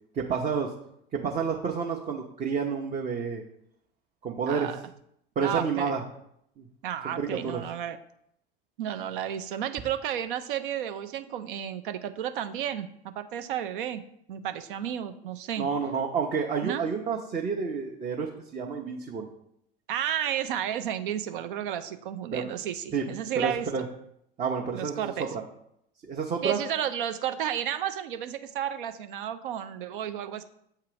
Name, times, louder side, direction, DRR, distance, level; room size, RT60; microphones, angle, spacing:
voice 1, 0.1-0.7 1.1-3.4 4.2-4.7 5.4-6.0 6.6-6.7 7.2-7.6 15.6-19.3 22.3-22.4 22.9-23.1 23.4-23.8 24.4-25.1 26.1-26.6, right 6 dB, 25° right, 0 dB, 0.7 m, -29 dB
voice 2, 4.5-4.8 5.4-6.0 6.8-8.0 8.8-12.9 13.1-14.0 14.3-15.7 16.6-16.8 19.9-23.7 24.7-25.3 26.4-30.4, right 10 dB, 60° right, 10 dB, 0.6 m, -32 dB
7.6 x 2.8 x 4.8 m, 0.74 s
figure-of-eight pair, 75°, 29 cm